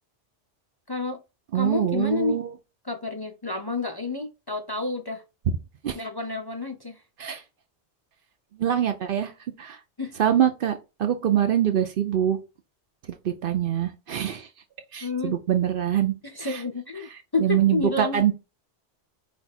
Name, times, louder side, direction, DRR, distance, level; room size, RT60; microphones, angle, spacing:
voice 1, 0.9-1.2 1.5-2.4 2.8-5.2 5.9-7.0 10.0-10.1 15.0-15.4 16.2-18.2, left 3 dB, 35° left, 0.4 m, -30 dB
voice 2, 1.5-2.5 5.8-6.0 7.2-7.4 8.6-9.3 9.6-9.8 10.2-12.4 13.2-14.5 14.9-16.1 16.4-16.6 17.4-18.3, right 10 dB, 60° right, 0.7 m, -24 dB
5.1 x 2.3 x 4.1 m
omnidirectional pair, 1.2 m